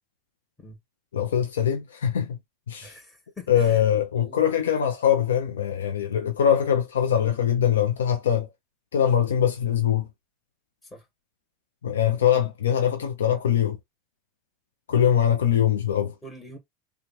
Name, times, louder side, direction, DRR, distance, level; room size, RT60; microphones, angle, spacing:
voice 1, 1.1-2.4 2.7-2.9 3.5-8.5 8.9-10.1 11.8-13.8 14.9-16.1, left 9 dB, 85° left, 0.6 m, -22 dB
voice 2, 2.8-3.8 4.2-4.4 10.9-11.0 16.2-16.6, left 1 dB, 15° left, 1.4 m, -44 dB
3.1 x 2.4 x 4.2 m
hypercardioid pair, 100°, 0 cm